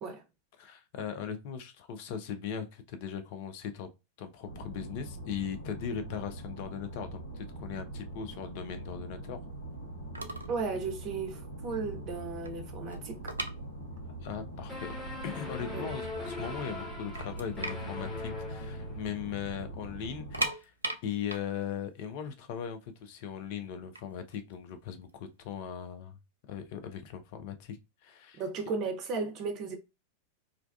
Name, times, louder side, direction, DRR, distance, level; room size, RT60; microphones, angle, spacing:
voice 1, 0.6-3.9 4.2-9.4 14.2-15.0 15.2-20.7 21.0-26.2 26.5-27.8 28.0-28.4, left 8 dB, 45° left, 0.4 m, -39 dB
sound 1, 4.5-20.5, right 1 dB, 80° left, 0.9 m, -43 dB
sound 2, 9.9-10.0 10.1-10.6 10.9-11.1 11.6-11.7 12.0-14.2 14.5-14.6 15.3-15.4 15.7-16.4 16.8-16.9 17.1-19.1 19.4-19.5 20.1-23.0 23.7-25.5, right 2 dB, 80° right, 0.3 m, -38 dB
voice 2, 10.5-13.3 15.7-15.9 28.4-29.8, right 4 dB, 35° right, 0.6 m, -35 dB
sound 3, 14.7-19.3, left 2 dB, 10° left, 1.1 m, -41 dB
2.4 x 2.2 x 2.3 m
figure-of-eight pair, 90°, 0 cm